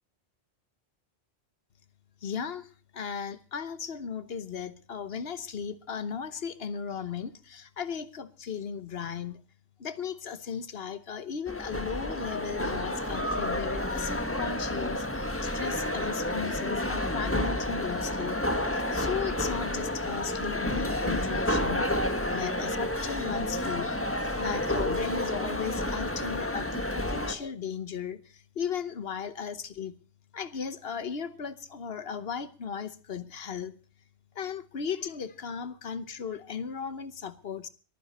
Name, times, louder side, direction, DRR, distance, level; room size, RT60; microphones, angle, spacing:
voice 1, 2.2-9.4 9.8-18.4 18.9-24.0 24.4-29.9 30.3-33.7 34.3-37.7, left 7 dB, 65° left, 13 dB, 1.2 m, -36 dB
sound 1, 11.5-27.3, left 1 dB, 10° left, 1.4 m, -30 dB
22.5 x 10.0 x 4.2 m, 0.38 s
omnidirectional pair, 1.1 m